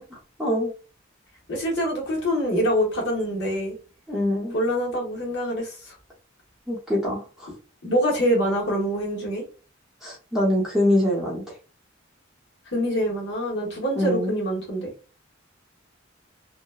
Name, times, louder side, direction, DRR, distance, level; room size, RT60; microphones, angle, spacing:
voice 1, 0.4-0.7 4.1-4.6 6.7-7.5 10.0-11.4 13.9-14.4, left 1 dB, ahead, -6 dB, 0.8 m, -24 dB
voice 2, 1.5-3.7 4.5-5.9 7.8-9.4 12.7-14.9, equal, 60° left, -2 dB, 1.2 m, -25 dB
2.9 x 2.1 x 2.3 m, 0.34 s
head